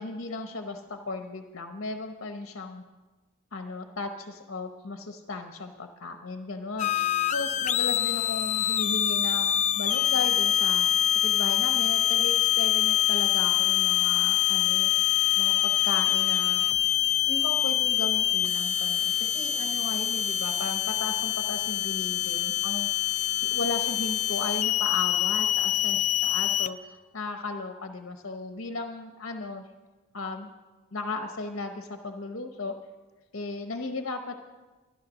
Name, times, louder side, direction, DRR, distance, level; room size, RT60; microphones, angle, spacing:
voice 1, 0.0-2.8 3.5-10.9 11.1-16.6 17.3-22.9 23.4-29.6 30.1-30.5 30.9-32.8 33.3-34.3, left 3 dB, 55° left, 5 dB, 0.9 m, -36 dB
sound 1, 6.8-26.7, left 12 dB, 30° left, 0.4 m, -25 dB
13.0 x 11.5 x 6.3 m, 1.3 s
head